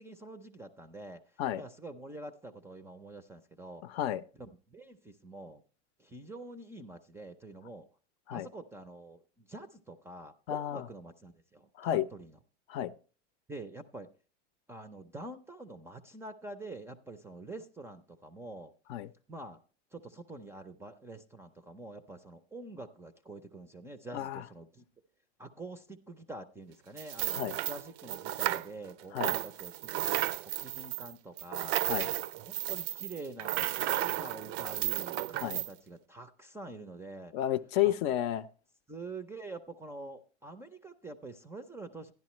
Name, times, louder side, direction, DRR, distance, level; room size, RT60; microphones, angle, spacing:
voice 1, 0.0-1.2 1.6-3.8 4.4-5.6 6.0-7.9 8.3-12.4 13.5-14.1 14.7-18.7 19.3-19.6 19.9-24.8 25.4-31.8 32.4-37.3 37.8-37.9 38.9-42.1, right 2 dB, 5° right, 0.4 m, -46 dB
voice 2, 3.9-4.2 8.3-8.5 10.5-10.9 11.8-12.1 12.7-12.9 18.9-19.1 24.1-24.4 27.3-27.5 29.1-29.3 31.9-32.1 35.4-35.6 37.3-38.5, left 12 dB, 55° left, 0.6 m, -31 dB
sound 1, 27.0-28.9 29.2-35.7, right 15 dB, 60° right, 0.5 m, -33 dB
11.5 x 10.5 x 3.0 m
supercardioid pair, 130°, 36 cm